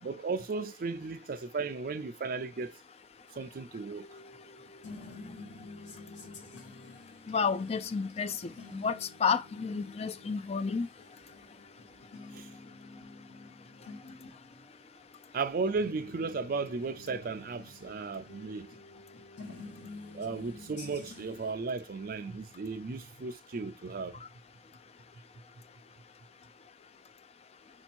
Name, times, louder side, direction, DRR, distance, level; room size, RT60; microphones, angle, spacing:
voice 1, 0.0-2.8 3.4-4.1 12.3-12.5 15.3-18.7 20.1-24.2, right 4 dB, 55° right, 0.4 m, -35 dB
sound 1, 4.0-21.5, left 3 dB, 85° left, 1.3 m, -50 dB
voice 2, 7.3-10.9, left 5 dB, 35° left, 0.4 m, -31 dB
4.3 x 2.8 x 4.4 m
head